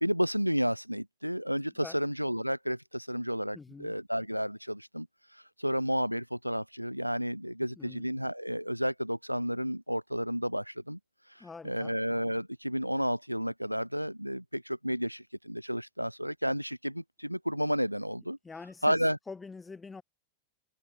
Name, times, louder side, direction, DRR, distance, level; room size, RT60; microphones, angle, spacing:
voice 1, 0.0-5.1 5.3-11.0 11.6-18.4 18.8-19.2, equal, 90° right, 0.6 m, -31 dB
voice 2, 3.5-4.0 7.8-8.0 11.4-11.9 18.4-19.0 19.3-20.0, left 4 dB, 15° left, 6.8 m, -45 dB
figure-of-eight pair, 90°, 0 cm